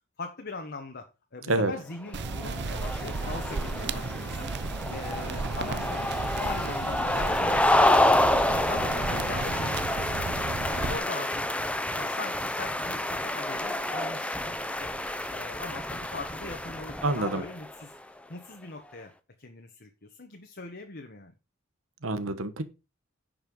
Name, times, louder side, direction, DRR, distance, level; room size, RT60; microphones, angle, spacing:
voice 1, 0.2-4.5 4.9-6.0 6.4-8.3 8.6-10.3 10.6-11.4 11.9-14.9 15.3-17.9 18.3-19.1 19.4-21.3, left 3 dB, 50° left, 1.4 m, -41 dB
sound 1, 2.1-17.8, left 1 dB, 5° left, 0.7 m, -28 dB
sound 2, 2.1-11.0, right 4 dB, 55° right, 0.7 m, -34 dB
voice 2, 17.0-17.4 22.0-22.6, right 2 dB, 80° right, 1.3 m, -27 dB
10.5 x 5.7 x 5.5 m
head